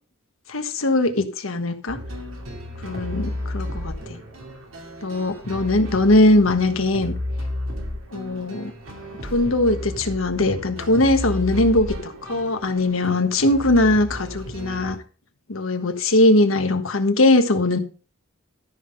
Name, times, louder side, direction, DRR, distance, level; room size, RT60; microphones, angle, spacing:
voice 1, 0.5-2.0 2.8-4.2 5.0-7.1 8.1-8.7 9.2-15.0 15.5-17.8, left 2 dB, 80° left, 1.4 m, -20 dB
sound 1, 1.9-14.9, left 1 dB, 80° right, 2.5 m, -33 dB
13.0 x 5.8 x 5.3 m
head